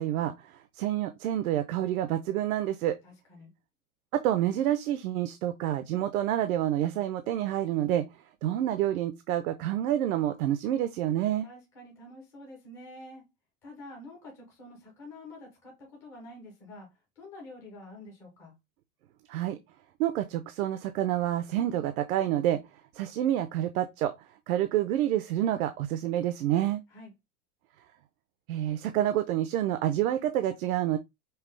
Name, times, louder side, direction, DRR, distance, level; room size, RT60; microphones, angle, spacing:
voice 1, 0.0-3.0 4.1-8.1 8.4-11.5 19.3-19.6 20.0-22.6 22.9-26.8 28.5-31.0, right 12 dB, 80° right, 0.6 m, -28 dB
voice 2, 3.0-3.5 11.4-13.3 13.6-16.9 17.2-18.5 26.9-27.1, left 1 dB, 5° left, 0.3 m, -47 dB
5.6 x 2.0 x 3.1 m
supercardioid pair, 175°, 43 cm